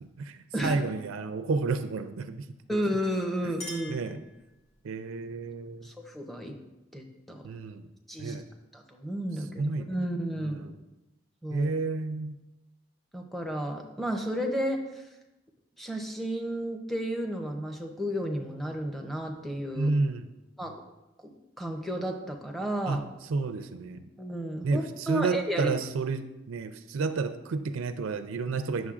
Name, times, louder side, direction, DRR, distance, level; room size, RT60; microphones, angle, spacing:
voice 1, 0.0-2.4 2.7-2.8 3.4-3.5 3.9-4.2 4.8-5.9 7.4-7.9 8.2-8.4 9.6-10.0 10.4-10.8 11.5-12.4 19.7-20.3 22.8-24.0 24.6-28.9, right 3 dB, 85° right, 10 dB, 0.4 m, -31 dB
voice 2, 2.7-4.0 5.8-6.5 6.9-7.4 8.1-8.4 8.7-10.7 11.4-11.8 13.1-15.0 15.8-20.0 20.6-20.8 21.2-23.1 24.2-25.7, equal, ahead, 2 dB, 0.6 m, -32 dB
Chink clink, 3.1-4.9, left 1 dB, 25° left, 1.8 m, -45 dB
9.8 x 6.3 x 2.4 m, 1.0 s
head